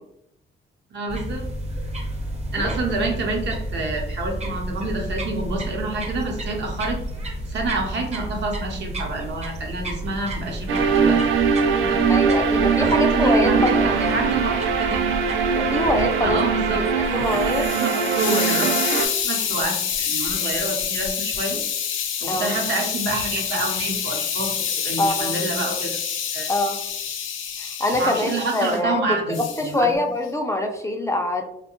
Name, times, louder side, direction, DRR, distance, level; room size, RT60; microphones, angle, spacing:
voice 1, 0.9-1.5 2.5-7.0 7.5-11.2 11.8-12.0 12.8-15.0 16.2-16.8 17.3-21.6 22.2-24.6 24.8-26.0 26.3-26.5 28.0-30.0, right 2 dB, 65° right, 1 dB, 0.8 m, -28 dB
sound 1, 1.1-17.7, right 1 dB, 35° right, 0.7 m, -32 dB
sound 2, 10.7-19.1, right 5 dB, 80° right, 0.4 m, -21 dB
voice 2, 12.1-14.0 15.6-16.4 16.9-17.6 18.0-18.1 22.2-22.5 25.0-25.3 26.5-26.8 27.8-29.2 29.6-31.5, left 1 dB, 15° left, 3 dB, 0.3 m, -24 dB
Hiss, 17.0-28.8 29.3-29.7, left 8 dB, 80° left, 0.5 m, -27 dB
2.6 x 2.1 x 2.9 m, 0.77 s
cardioid pair, 90°, 20 cm